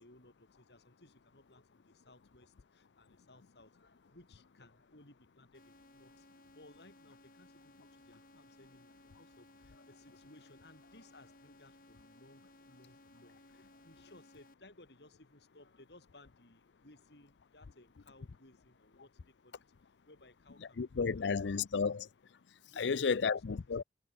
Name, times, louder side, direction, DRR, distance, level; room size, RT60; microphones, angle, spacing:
voice 1, 0.0-6.3 6.5-21.7 22.6-23.2 23.5-23.6, left 2 dB, 70° left, 5.3 m, -61 dB
sound 1, 5.5-14.5, left 1 dB, 50° left, 6.2 m, -61 dB
voice 2, 20.8-22.1 22.8-23.8, left 5 dB, 90° left, 0.5 m, -32 dB
head